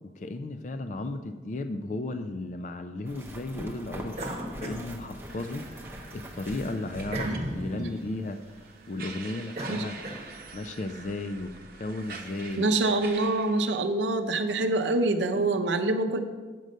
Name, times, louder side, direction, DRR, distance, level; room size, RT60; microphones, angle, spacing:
voice 1, 0.0-5.6 6.1-8.4 8.9-10.0 10.5-11.5 11.8-12.7, left 2 dB, 40° left, 8 dB, 0.4 m, -34 dB
sound 1, 3.1-7.7 8.0-8.1 11.1-11.2 11.5-11.6 11.9-12.6, right 1 dB, 15° right, 0.8 m, -44 dB
sound 2, 4.1-5.7 6.1-10.7, right 1 dB, 35° right, 1.2 m, -38 dB
sound 3, 5.3-13.8, right 4 dB, 50° right, 0.8 m, -46 dB
voice 2, 12.6-16.2, right 2 dB, 85° right, 8 dB, 0.6 m, -25 dB
7.6 x 6.4 x 5.3 m, 1.3 s
head